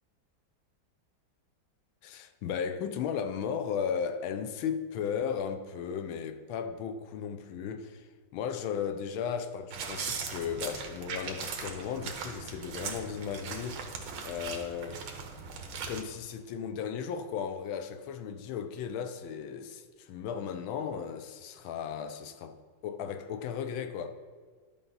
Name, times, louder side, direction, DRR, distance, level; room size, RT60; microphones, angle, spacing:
voice 1, 2.0-8.1 8.3-13.8 14.2-15.0 15.9-22.6 22.8-24.1, left 7 dB, 80° left, 1.4 m, -35 dB
sound 1, 9.7-16.0, right 5 dB, 85° right, 1.7 m, -39 dB
11.0 x 5.4 x 3.9 m
omnidirectional pair, 2.2 m